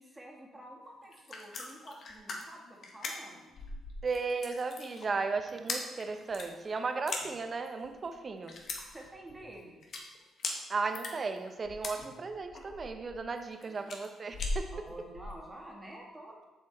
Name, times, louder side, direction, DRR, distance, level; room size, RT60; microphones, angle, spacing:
voice 1, 0.0-3.5 8.1-8.4 8.9-9.8 13.7-13.8 14.7-16.4, right 1 dB, 15° right, -1 dB, 1.9 m, -49 dB
sound 1, 1.0-15.4, left 3 dB, 60° left, 1.5 m, -40 dB
voice 2, 4.0-8.5 10.7-14.7, right 4 dB, 40° right, 8 dB, 0.8 m, -35 dB
7.7 x 6.9 x 4.4 m, 1.2 s
cardioid pair, 90°, 0 cm